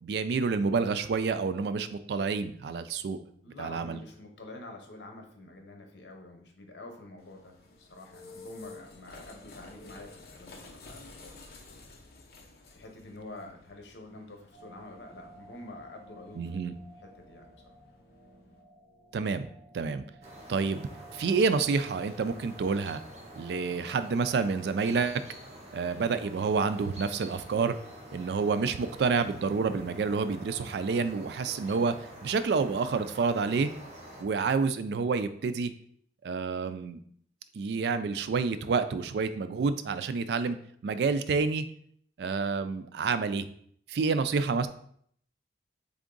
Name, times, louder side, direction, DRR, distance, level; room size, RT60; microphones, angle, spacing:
voice 1, 0.0-3.2 3.6-4.0 16.4-16.7 19.1-19.5 19.7-20.0 20.5-20.8 21.1-23.0 23.4-25.2 25.7-27.8 28.1-32.0 32.2-33.7 34.2-35.7 36.2-37.0 37.5-40.6 40.8-41.7 42.2-43.5 43.9-44.7, right 4 dB, 70° right, 12 dB, 0.3 m, -28 dB
voice 2, 3.4-11.5 12.7-16.8 17.2-17.5, left 2 dB, 90° left, 3 dB, 0.9 m, -47 dB
sound 1, 7.2-18.6, left 3 dB, 60° left, 0.7 m, -52 dB
sound 2, 14.5-31.9, right 1 dB, 40° left, 1.6 m, -55 dB
sound 3, 20.2-34.2, right 1 dB, 40° right, 0.9 m, -48 dB
3.6 x 3.5 x 3.8 m, 0.64 s
head